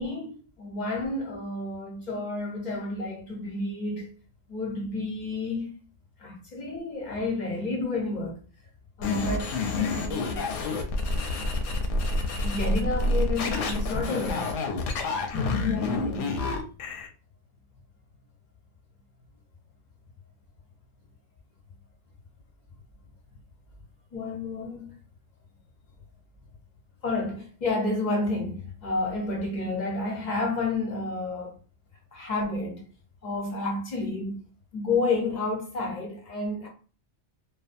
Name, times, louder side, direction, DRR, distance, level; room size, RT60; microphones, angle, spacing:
voice 1, 0.0-4.1 4.5-5.7 6.2-8.4 9.0-10.5 12.4-14.6 15.3-16.4 24.1-24.9 27.0-31.5 32.1-32.8 33.2-34.4 34.7-36.7, left 2 dB, 45° left, 0.6 m, -30 dB
Alphabet Soup, 9.0-17.1, left 3 dB, 85° left, 1.0 m, -28 dB
2.5 x 2.3 x 2.5 m
omnidirectional pair, 1.3 m